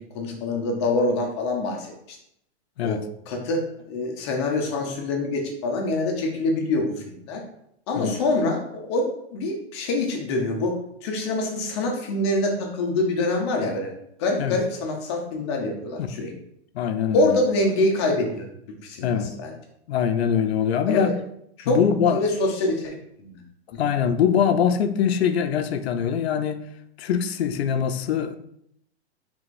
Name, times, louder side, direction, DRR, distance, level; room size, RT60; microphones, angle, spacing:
voice 1, 0.0-2.2 2.8-3.0 3.3-3.6 3.9-7.4 7.9-9.1 9.3-10.8 11.0-13.9 14.2-16.3 17.1-18.4 18.8-19.5 20.9-21.1 21.6-23.4, left 2 dB, 25° left, 0.6 m, -25 dB
voice 2, 16.7-17.4 19.0-19.4 19.9-21.1 21.6-22.2 23.8-26.6 27.0-28.4, left 8 dB, 65° left, 0.5 m, -23 dB
4.7 x 3.5 x 2.5 m
hypercardioid pair, 165°, 33 cm